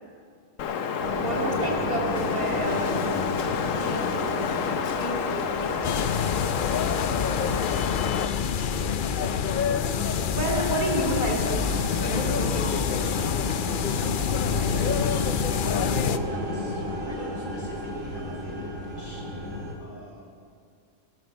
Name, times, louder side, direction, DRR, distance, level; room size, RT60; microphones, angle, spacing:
Wind, 0.6-8.3, left 6 dB, 85° left, 1.2 m, -29 dB
sound 1, 1.0-19.7, left 1 dB, 75° right, 2.9 m, -34 dB
voice 1, 1.2-3.3 3.7-4.7 5.0-6.1 10.3-13.3, right 1 dB, 30° right, -1 dB, 2.8 m, -31 dB
sound 2, 5.8-16.2, left 8 dB, 60° left, 0.6 m, -27 dB
voice 2, 8.5-9.3 14.4-15.7 16.0-20.4, left 2 dB, 45° left, -3 dB, 4.4 m, -43 dB
17.5 x 12.0 x 6.1 m, 2.2 s
omnidirectional pair, 1.3 m